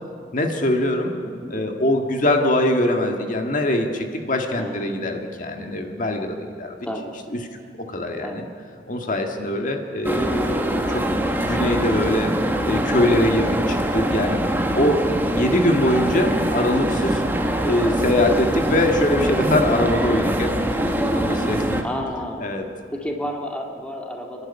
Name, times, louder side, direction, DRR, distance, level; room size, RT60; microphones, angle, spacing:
voice 1, 0.3-1.1 1.5-6.8 7.7-8.4 8.9-12.3 12.7-14.4 14.7-15.1 15.3-17.2 17.6-20.5 21.0-21.8 22.4-22.6, left 1 dB, 45° left, 3 dB, 1.7 m, -22 dB
voice 2, 4.5-5.1 6.8-7.1 8.2-8.5 10.0-10.2 16.1-16.3 21.8-22.5 22.9-24.5, equal, 5° left, 1 dB, 2.0 m, -32 dB
sound 1, 10.0-21.8, right 1 dB, 10° right, 1.6 m, -23 dB
29.5 x 11.5 x 9.9 m, 2.2 s
head